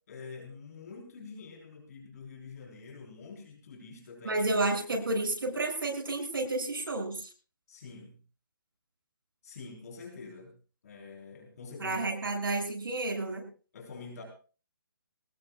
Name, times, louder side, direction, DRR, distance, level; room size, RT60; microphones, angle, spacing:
voice 1, 0.1-4.4 7.7-8.2 9.4-10.5 10.8-12.2 13.7-14.2, left 4 dB, 45° left, 1 dB, 4.5 m, -46 dB
voice 2, 4.2-7.3 11.8-13.4, right 2 dB, 75° right, 1 dB, 7.5 m, -31 dB
21.0 x 19.5 x 2.5 m, 0.37 s
hypercardioid pair, 160°, 12 cm